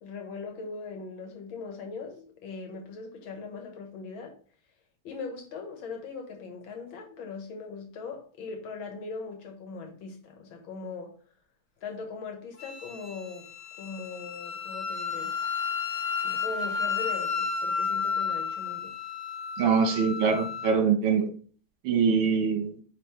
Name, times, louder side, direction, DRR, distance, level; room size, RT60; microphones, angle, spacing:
voice 1, 0.0-4.4 5.0-11.2 11.8-13.5 13.8-15.4 16.2-18.9, left 4 dB, 80° left, 2.1 m, -40 dB
Wind instrument woodwind instrument, 12.6-20.8, left 6 dB, 55° left, 1.5 m, -32 dB
voice 2, 19.6-21.3 21.8-22.8, right 6 dB, 80° right, 2.0 m, -24 dB
9.3 x 3.1 x 3.2 m
omnidirectional pair, 2.2 m